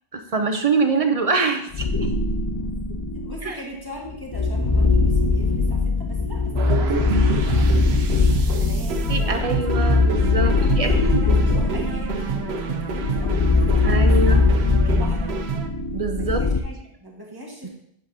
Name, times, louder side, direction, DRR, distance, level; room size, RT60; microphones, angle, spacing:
voice 1, 0.1-2.1 3.4-3.6 9.1-11.4 13.8-14.4 15.9-16.4 17.6-17.7, right 4 dB, 40° right, 6 dB, 0.7 m, -24 dB
sound 1, 1.7-3.4 4.0-16.6, left 3 dB, 40° left, 0.3 m, -21 dB
voice 2, 3.2-9.9 10.4-14.4 14.8-15.3 16.2-17.7, equal, 20° right, -3 dB, 1.7 m, -39 dB
sound 2, 6.6-15.7, right 5 dB, 85° right, 1.0 m, -28 dB
8.0 x 7.6 x 2.8 m, 0.72 s
omnidirectional pair, 1.0 m